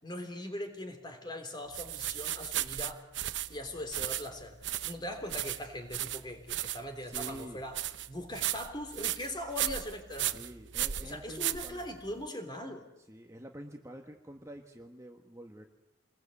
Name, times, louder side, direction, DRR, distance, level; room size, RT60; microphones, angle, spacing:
voice 1, 0.0-3.1 3.5-7.8 8.1-10.4 11.0-12.9, left 1 dB, 25° left, 6 dB, 3.3 m, -41 dB
sound 1, 1.7-12.2, right 13 dB, 70° right, 0.8 m, -36 dB
voice 2, 7.0-7.6 10.3-11.8 13.1-15.7, right 1 dB, 15° right, 3 dB, 1.4 m, -47 dB
28.0 x 21.0 x 8.4 m, 0.93 s
head